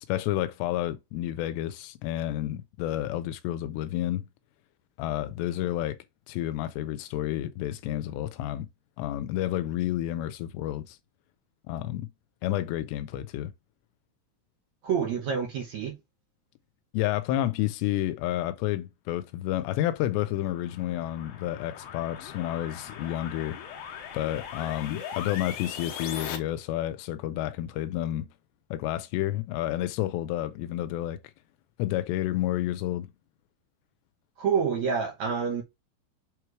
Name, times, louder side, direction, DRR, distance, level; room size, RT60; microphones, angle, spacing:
voice 1, 0.1-4.3 5.0-6.0 6.3-8.7 9.0-11.0 11.7-12.1 12.4-13.5 16.9-23.6 24.1-28.3 28.7-31.2 31.8-33.1, left 13 dB, 90° left, 2.8 m, -30 dB
voice 2, 14.8-15.9 34.4-35.6, right 6 dB, 75° right, 1.6 m, -27 dB
sound 1, 20.0-26.4, left 8 dB, 70° left, 2.5 m, -40 dB
7.4 x 3.2 x 4.5 m
omnidirectional pair, 4.9 m